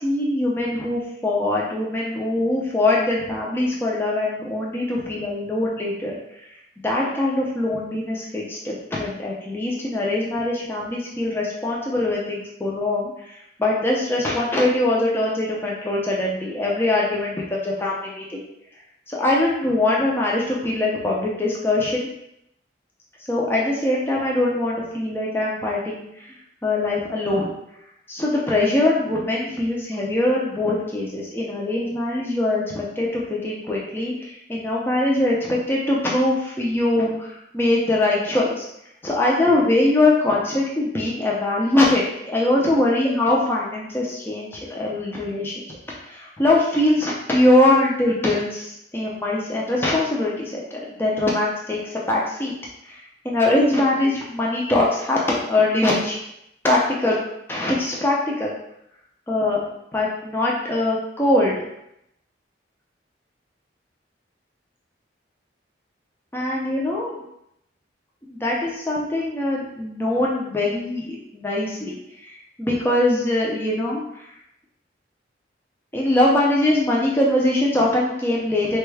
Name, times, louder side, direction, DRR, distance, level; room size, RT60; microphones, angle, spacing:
voice 1, 0.0-6.1 6.8-18.4 19.1-22.1 23.3-26.3 26.6-27.5 28.1-38.7 39.0-45.5 46.0-52.5 52.8-56.2 56.6-57.2 57.5-58.5 59.3-59.6 59.9-61.5 66.3-67.1 68.3-74.3 75.9-78.8, left 2 dB, 10° left, -4 dB, 0.5 m, -22 dB
3.5 x 2.3 x 3.2 m, 0.79 s
head